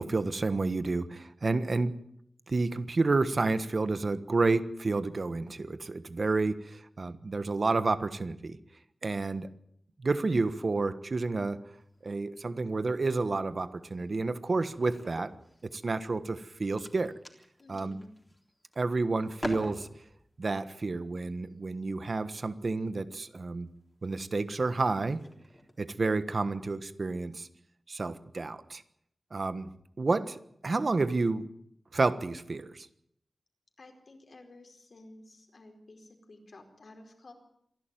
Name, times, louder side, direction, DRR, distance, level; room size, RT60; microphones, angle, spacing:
voice 1, 0.0-1.9 2.5-8.6 9.0-9.5 10.0-11.6 12.0-15.3 15.6-17.1 17.7-18.0 18.8-19.9 20.4-23.7 24.0-25.2 25.8-27.5 27.9-28.8 29.3-29.7 30.0-31.5 31.9-32.9, right 3 dB, 55° right, 12 dB, 1.3 m, -30 dB
sound 1, 11.8-12.5 13.0-13.3 13.6-16.1 16.5-18.9 19.2-20.3 21.3-21.5 22.7-22.9 23.7-24.0 24.5-24.6 24.9-25.9, left 1 dB, 20° left, 3.7 m, -45 dB
voice 2, 17.6-18.1 33.8-37.3, left 2 dB, 65° left, 3 dB, 4.7 m, -53 dB
26.5 x 11.5 x 9.2 m, 0.73 s
wide cardioid pair, 80°, 0 cm